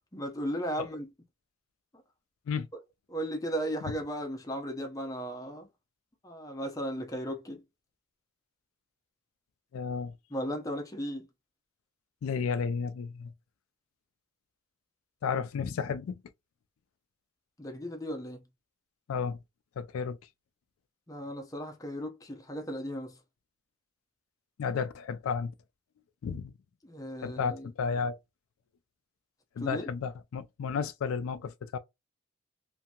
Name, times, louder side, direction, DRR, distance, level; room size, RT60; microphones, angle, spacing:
voice 1, 0.1-1.1 3.1-5.7 6.2-7.6 10.3-11.3 17.6-18.4 21.1-23.2 26.8-27.7 29.6-29.9, equal, 15° left, 0.6 m, -36 dB
voice 2, 9.7-10.1 12.2-13.3 15.2-16.2 19.1-19.4 19.8-20.2 24.6-25.5 26.2-26.5 27.2-28.2 29.6-31.8, left 6 dB, 85° left, 0.3 m, -32 dB
2.8 x 2.6 x 2.2 m
head